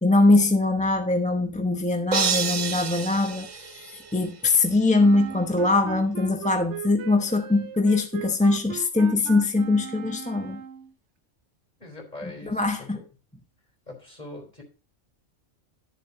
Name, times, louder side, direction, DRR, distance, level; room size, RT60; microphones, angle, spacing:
voice 1, 0.0-10.6 12.4-13.0, left 2 dB, 5° left, 4 dB, 0.8 m, -22 dB
sound 1, 2.1-4.4, right 5 dB, 85° right, 1.5 m, -29 dB
Wind instrument woodwind instrument, 5.0-10.9, right 8 dB, 70° right, 0.9 m, -38 dB
voice 2, 11.8-13.0 13.9-14.6, left 2 dB, 35° left, 1 dB, 4.1 m, -42 dB
11.5 x 7.2 x 4.1 m, 0.35 s
omnidirectional pair, 1.3 m